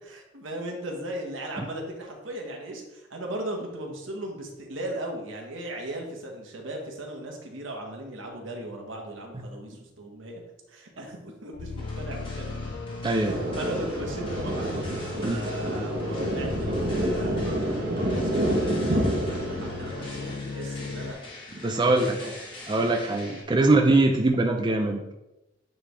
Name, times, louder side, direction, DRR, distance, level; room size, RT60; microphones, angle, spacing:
voice 1, 0.0-10.4 10.7-12.7 13.5-14.7 15.1-21.2 21.7-22.3 22.8-22.9, right 1 dB, 75° right, 1 dB, 1.3 m, -37 dB
sound 1, 11.5-21.1, left 3 dB, 50° left, 0.4 m, -37 dB
sound 2, 11.7-23.4, left 1 dB, 25° left, 1.3 m, -44 dB
voice 2, 13.0-13.4 15.2-15.4 21.6-22.2 22.7-25.1, right 2 dB, 25° right, 3 dB, 0.4 m, -23 dB
Thunder, 13.3-20.4, right 1 dB, 55° right, 1.0 m, -28 dB
8.7 x 3.4 x 3.4 m, 0.95 s
head